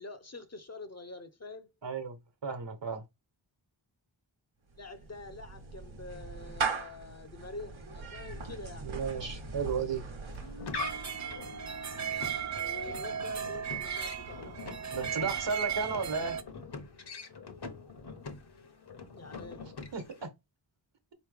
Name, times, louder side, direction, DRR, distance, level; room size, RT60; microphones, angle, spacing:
voice 1, 0.0-1.7 4.8-8.9 12.5-14.6 19.1-19.6, left 3 dB, 35° left, 0.6 m, -46 dB
voice 2, 1.8-2.1 2.4-3.0 8.8-10.0 14.9-16.4 19.9-20.3, right 5 dB, 65° right, 1.1 m, -34 dB
Clapping / Meow, 4.7-11.1, right 4 dB, 90° right, 1.1 m, -39 dB
sound 1, 10.3-20.3, left 4 dB, 60° left, 0.9 m, -44 dB
sound 2, 10.8-16.4, right 8 dB, 40° right, 0.5 m, -36 dB
4.2 x 3.0 x 3.3 m
wide cardioid pair, 70°, 46 cm